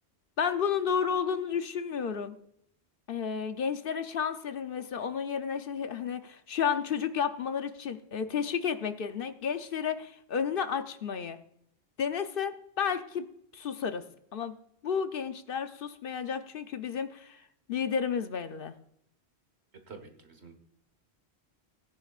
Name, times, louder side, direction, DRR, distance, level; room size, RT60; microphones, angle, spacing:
voice 1, 0.4-2.4 3.1-11.4 12.0-13.3 13.5-14.0 14.3-14.5 14.8-17.4 17.7-18.7, left 7 dB, 60° left, 9 dB, 0.8 m, -32 dB
voice 2, 19.9-20.5, right 4 dB, 80° right, 6 dB, 1.7 m, -48 dB
18.0 x 9.9 x 2.4 m, 0.72 s
omnidirectional pair, 1.1 m